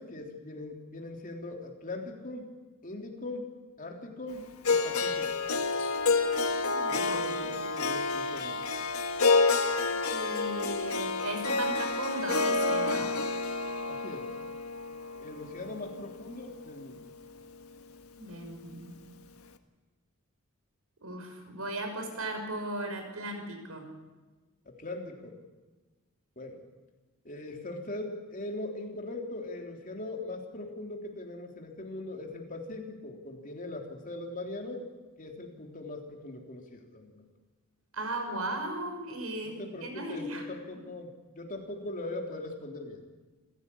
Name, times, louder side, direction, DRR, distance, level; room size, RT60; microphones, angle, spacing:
voice 1, 0.0-2.5 2.8-3.5 3.8-5.4 6.9-8.6 13.9-14.3 15.2-17.1 24.7-25.4 26.4-26.6 27.3-34.8 35.2-37.3 39.4-41.1 41.4-43.0, left 2 dB, 40° left, 2 dB, 3.6 m, -40 dB
Harp, 4.6-16.8, left 3 dB, 85° left, 1.6 m, -29 dB
voice 2, 6.7-7.5 10.1-13.1 18.2-19.0 21.0-23.9 37.9-40.5, right 1 dB, 80° right, 5 dB, 6.1 m, -37 dB
28.0 x 16.0 x 8.7 m, 1.3 s
head